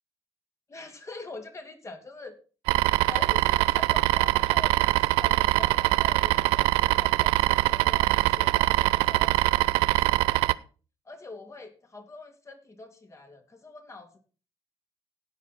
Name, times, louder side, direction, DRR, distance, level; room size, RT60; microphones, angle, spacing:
voice 1, 0.7-2.4 3.1-10.5 11.0-14.2, left 2 dB, 30° left, 5 dB, 2.9 m, -44 dB
sound 1, 2.7-10.5, right 19 dB, 90° right, 0.4 m, -23 dB
16.5 x 5.8 x 4.3 m, 0.36 s
supercardioid pair, 65°, 9 cm